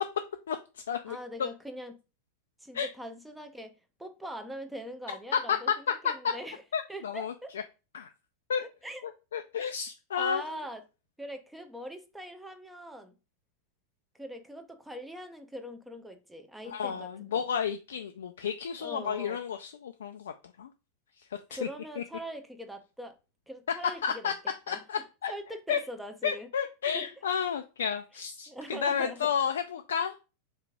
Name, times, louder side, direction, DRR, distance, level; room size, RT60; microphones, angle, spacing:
voice 1, 1.1-2.0 2.6-6.6 6.9-7.5 8.8-9.0 9.6-9.7 10.2-10.8 11.2-13.1 14.2-17.4 18.8-19.4 21.5-23.2 23.5-24.3 24.7-26.5 26.9-27.1 28.5-29.3, equal, 5° right, 0.6 m, -42 dB
voice 2, 5.3-5.8 6.2-6.3 6.7-7.3 7.9-8.1 8.5-8.6 9.3-10.4 16.7-20.3 20.6-20.7 21.5-21.6 22.0-22.1 24.0-24.3 24.7-25.3 25.7-25.8 26.2-30.2, left 7 dB, 65° left, 0.3 m, -31 dB
3.6 x 3.0 x 3.5 m
figure-of-eight pair, 90°, 0 cm